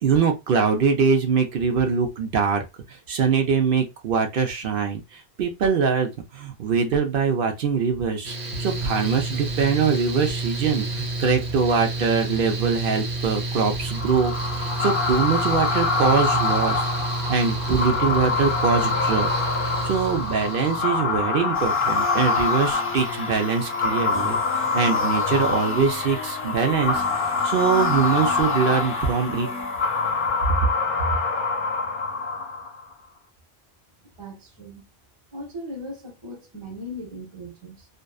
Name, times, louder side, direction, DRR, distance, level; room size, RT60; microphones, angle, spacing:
voice 1, 0.0-16.8 17.3-19.3 19.6-27.0 27.4-29.5, right 6 dB, 65° right, 0.7 m, -23 dB
Mechanical fan, 8.2-20.8, right 2 dB, 85° right, 1.0 m, -30 dB
sound 1, 13.9-32.8, left 4 dB, 60° left, 0.7 m, -25 dB
sound 2, 21.5-30.4, left 3 dB, 15° left, 0.5 m, -37 dB
voice 2, 34.2-34.8 35.3-37.9, equal, 30° right, 0.8 m, -38 dB
2.6 x 2.2 x 2.3 m
omnidirectional pair, 1.0 m